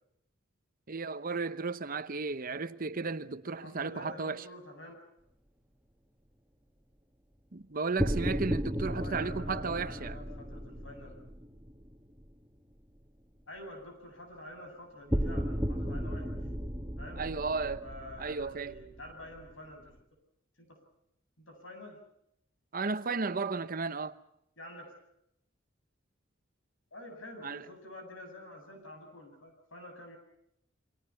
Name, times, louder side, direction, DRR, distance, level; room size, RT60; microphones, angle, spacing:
voice 1, 0.9-4.4 7.5-10.2 17.2-17.9 18.2-18.7 22.7-24.1 27.4-27.6, right 4 dB, 45° right, 0.9 m, -34 dB
voice 2, 3.6-4.9 8.9-11.2 13.5-16.4 17.0-17.2 17.8-20.0 20.6-20.8 21.4-22.0 24.6-24.9 26.9-30.2, left 1 dB, 90° left, 7.7 m, -48 dB
sound 1, 8.0-12.3 15.1-19.7, equal, 5° right, 1.8 m, -35 dB
29.0 x 24.0 x 5.7 m
head